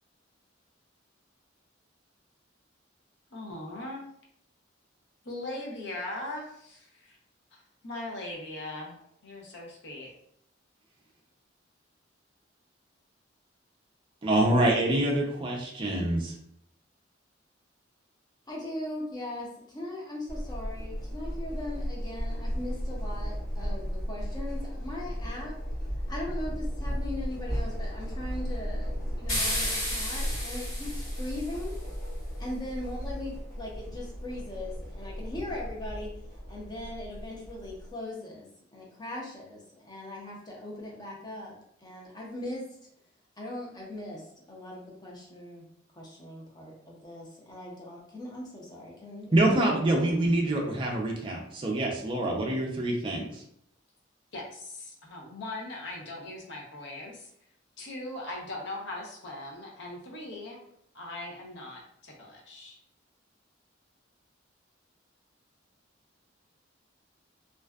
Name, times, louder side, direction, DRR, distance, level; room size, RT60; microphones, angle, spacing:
voice 1, 3.3-4.0 5.2-7.2 7.5-10.1 54.3-57.3 57.8-60.6 60.9-62.8, left 2 dB, 65° left, -1 dB, 0.7 m, -40 dB
voice 2, 14.2-16.3 49.3-53.3, right 1 dB, 25° right, -1 dB, 0.4 m, -26 dB
voice 3, 18.5-25.6 26.1-31.7 32.4-36.1 36.5-41.5 41.8-42.7 43.4-44.2 44.5-45.7 45.9-50.2, left 1 dB, 20° left, -3 dB, 0.6 m, -39 dB
sound 1, 20.3-37.9, equal, 45° left, 1.0 m, -35 dB
sound 2, 29.3-31.7, left 1 dB, 90° left, 1.4 m, -33 dB
2.5 x 2.2 x 2.2 m, 0.70 s
head